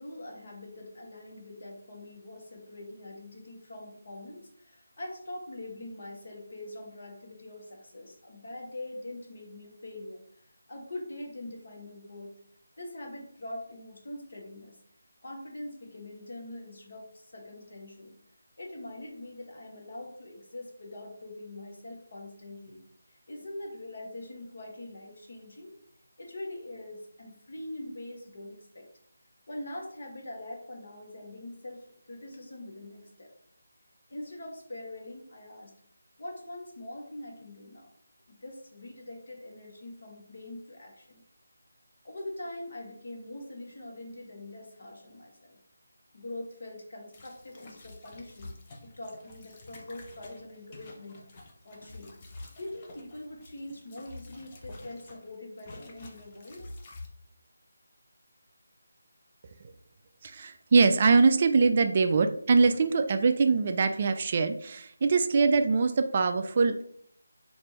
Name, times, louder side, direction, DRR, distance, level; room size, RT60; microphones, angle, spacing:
voice 1, 0.0-12.3 12.8-14.8 15.2-18.2 18.6-22.8 23.1-25.7 26.2-28.9 29.5-33.3 34.1-35.7 36.2-37.9 38.3-41.2 42.0-45.6 46.1-48.5 48.8-51.2 51.6-52.2 52.6-56.8, left 1 dB, 60° left, 0 dB, 1.2 m, -43 dB
sound 1, 47.1-55.3 55.6-57.1, left 2 dB, 30° left, 0.7 m, -48 dB
voice 2, 60.2-66.8, right 4 dB, 40° right, 8 dB, 0.3 m, -23 dB
3.3 x 2.6 x 4.2 m, 0.65 s
figure-of-eight pair, 160°, 0 cm